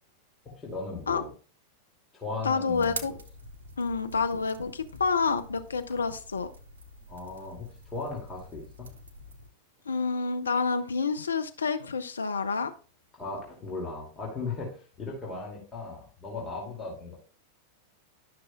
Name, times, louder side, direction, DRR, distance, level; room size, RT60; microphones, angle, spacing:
voice 1, 0.4-1.3 2.1-3.0 7.1-8.9 13.1-17.2, left 3 dB, 20° left, -4 dB, 2.5 m, -37 dB
voice 2, 2.4-3.1 3.8-6.5 9.9-12.7, left 4 dB, 75° left, 9 dB, 0.4 m, -28 dB
sound 1, 2.7-9.5, right 2 dB, 65° right, 0.9 m, -45 dB
12.0 x 6.0 x 2.3 m, 0.39 s
figure-of-eight pair, 90°, 0 cm